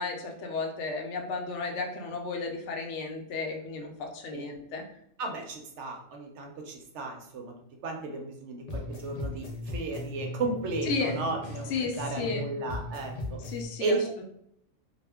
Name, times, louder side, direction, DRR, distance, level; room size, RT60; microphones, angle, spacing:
voice 1, 0.0-4.8 10.9-11.2 11.7-12.5 13.4-14.0, left 4 dB, 70° left, 2 dB, 0.8 m, -33 dB
voice 2, 5.2-7.5 7.8-11.7 12.0-13.4 13.8-14.0, right 3 dB, 70° right, 2 dB, 0.8 m, -34 dB
sound 1, 8.7-12.4 12.7-13.6, left 2 dB, 50° left, 0.4 m, -37 dB
2.4 x 2.1 x 3.4 m, 0.72 s
omnidirectional pair, 1.3 m